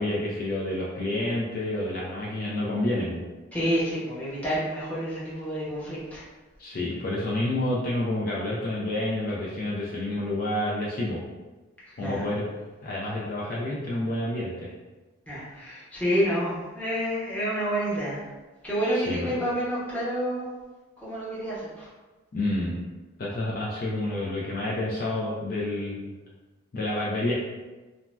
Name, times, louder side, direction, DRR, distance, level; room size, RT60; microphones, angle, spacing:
voice 1, 0.0-3.2 6.6-11.2 12.0-12.4 12.8-14.7 18.9-19.3 22.3-22.8 23.2-26.1 26.7-27.3, left 1 dB, 45° left, -6 dB, 0.4 m, -29 dB
voice 2, 3.5-6.2 11.9-12.2 15.3-18.2 18.6-20.5 21.0-21.9, equal, 5° left, -9 dB, 0.8 m, -29 dB
2.6 x 2.2 x 3.1 m, 1.2 s
head